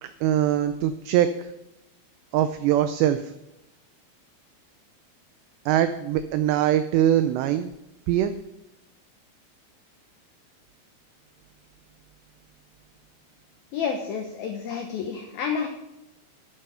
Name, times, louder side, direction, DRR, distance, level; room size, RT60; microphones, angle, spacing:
voice 1, 0.0-1.5 2.3-3.3 5.7-7.7 8.1-8.4, right 11 dB, 85° right, 10 dB, 2.4 m, -22 dB
voice 2, 13.7-15.7, left 6 dB, 80° left, 4 dB, 2.1 m, -29 dB
11.0 x 9.6 x 5.7 m, 0.90 s
omnidirectional pair, 5.7 m